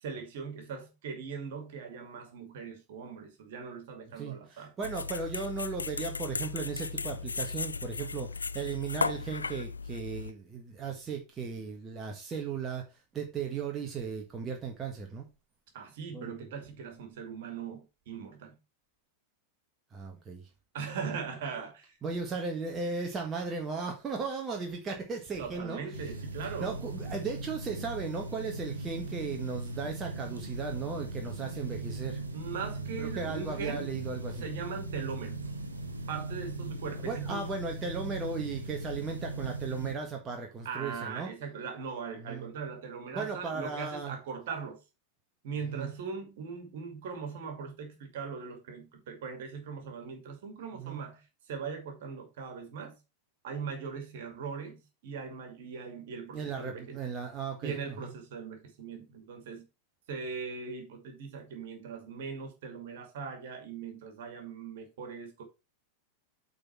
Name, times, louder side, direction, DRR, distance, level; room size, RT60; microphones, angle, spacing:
voice 1, 0.0-4.8 15.7-18.6 20.7-22.0 25.4-26.7 32.3-33.9 34.4-35.4 36.1-37.5 40.6-44.8 45.4-53.0 53.4-57.0 57.6-59.7 60.1-65.4, right 5 dB, 55° right, 2.4 m, -40 dB
voice 2, 4.2-12.8 13.1-15.3 16.1-16.3 19.9-20.5 22.0-25.8 26.6-32.2 33.0-34.5 37.0-41.3 42.2-42.5 43.1-44.1 45.7-45.9 50.7-51.0 56.3-58.1, right 5 dB, 20° right, 1.6 m, -36 dB
sound 1, 4.8-10.3, left 4 dB, 75° left, 0.3 m, -36 dB
sound 2, 25.9-39.9, right 2 dB, 80° right, 1.3 m, -39 dB
8.6 x 4.2 x 4.4 m
figure-of-eight pair, 90°, 0 cm